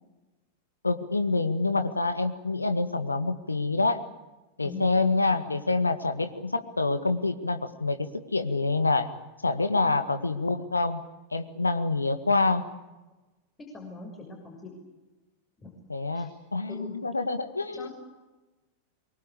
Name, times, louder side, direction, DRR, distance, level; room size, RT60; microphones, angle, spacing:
voice 1, 0.8-4.0 4.6-9.1 9.4-11.0 11.3-12.6 15.9-17.9, left 3 dB, 80° left, 10 dB, 1.8 m, -26 dB
voice 2, 13.7-14.7 15.6-15.7 16.1-16.3 16.7-16.9 17.7-17.9, left 3 dB, 20° left, 1 dB, 6.8 m, -41 dB
25.0 x 23.0 x 8.6 m, 1.1 s
figure-of-eight pair, 90°, 0 cm